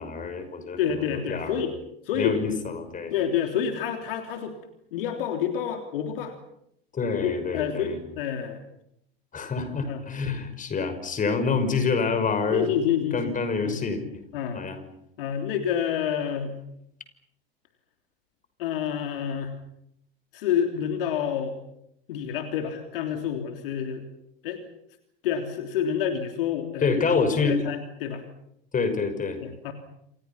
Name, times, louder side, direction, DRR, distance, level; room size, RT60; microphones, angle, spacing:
voice 1, 0.0-1.6 2.1-3.1 6.9-8.0 9.3-12.7 13.1-14.0 14.5-14.8 26.8-27.6 28.7-29.4, left 4 dB, 25° left, 9 dB, 5.9 m, -27 dB
voice 2, 0.8-1.7 2.0-2.4 3.1-4.6 4.9-6.3 7.2-8.6 9.9-10.0 12.5-13.4 13.6-13.8 14.3-14.7 15.2-16.5 18.6-19.5 20.3-21.6 22.1-24.0 24.4-24.6 25.2-27.1 27.3-28.2 29.4-29.7, left 8 dB, 65° left, 5 dB, 3.3 m, -28 dB
28.5 x 28.5 x 5.9 m, 0.74 s
figure-of-eight pair, 80°, 31 cm